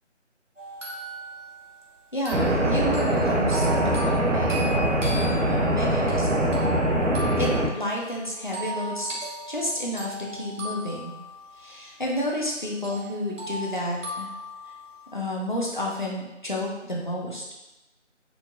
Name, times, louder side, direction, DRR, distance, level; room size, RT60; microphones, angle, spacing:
sound 1, 0.6-12.5 12.8-15.2, equal, 90° right, 1.3 m, -38 dB
voice 1, 2.1-3.7 3.9-4.8 5.4-6.5 7.4-7.5 7.7-9.1 9.5-11.1 11.6-14.3 15.1-17.4, left 1 dB, 40° left, -3 dB, 0.6 m, -30 dB
sound 2, 2.3-7.7, right 1 dB, 75° right, 0.8 m, -23 dB
4.5 x 2.5 x 2.6 m, 0.99 s
figure-of-eight pair, 180°, 37 cm